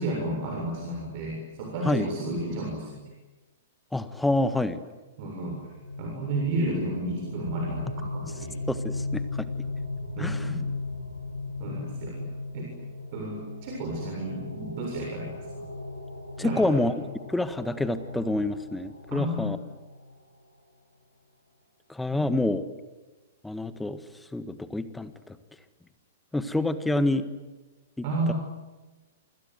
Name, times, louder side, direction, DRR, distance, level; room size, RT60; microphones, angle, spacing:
voice 1, 0.0-3.1 5.2-5.6 6.0-8.5 10.2-10.7 11.6-12.3 12.5-12.7 13.1-15.6 16.4-16.9 19.1-19.5 22.1-22.3 28.0-28.3, right 1 dB, 40° right, 0 dB, 7.2 m, -32 dB
voice 2, 3.9-4.8 8.7-9.5 10.2-10.5 16.4-16.9 17.3-19.6 21.9-22.6 23.4-24.0 24.3-25.4 26.3-27.3 28.0-28.3, left 2 dB, 5° left, 13 dB, 1.6 m, -27 dB
sound 1, 5.4-20.1, left 2 dB, 80° left, 6.7 m, -37 dB
29.0 x 25.5 x 7.9 m, 1.2 s
figure-of-eight pair, 110°, 0 cm